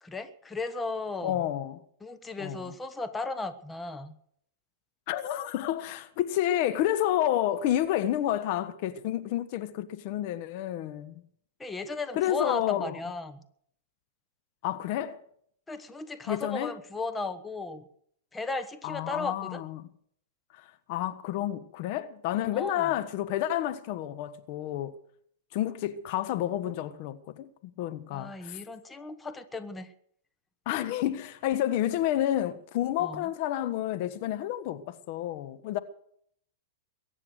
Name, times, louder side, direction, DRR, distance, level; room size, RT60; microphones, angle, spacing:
voice 1, 0.0-1.4 2.0-4.2 11.6-13.4 15.7-17.9 18.3-19.6 22.5-22.9 28.1-29.9 33.0-33.3, left 3 dB, 10° left, 1.3 m, -35 dB
voice 2, 1.2-1.8 2.4-2.6 5.1-11.2 12.1-13.0 14.6-15.2 16.3-16.7 18.8-19.9 20.5-24.9 25.5-28.6 30.6-35.8, left 12 dB, 50° left, 1.3 m, -30 dB
22.5 x 9.8 x 6.4 m
hypercardioid pair, 120°, 0 cm